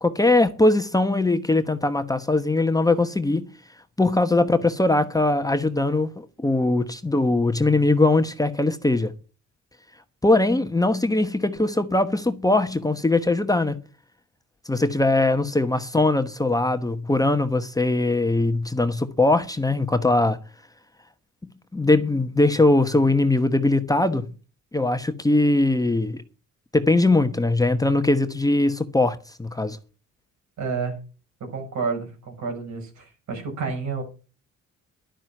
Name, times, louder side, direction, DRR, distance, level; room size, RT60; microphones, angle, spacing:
voice 1, 0.0-3.5 4.0-9.1 10.2-13.8 14.6-20.4 21.4-24.3 24.7-26.2 26.7-29.8, left 2 dB, 10° left, 1.1 m, -21 dB
voice 2, 30.6-31.0 31.5-34.0, right 5 dB, 70° right, 6.0 m, -30 dB
11.5 x 10.0 x 6.0 m
cardioid pair, 90°, 30 cm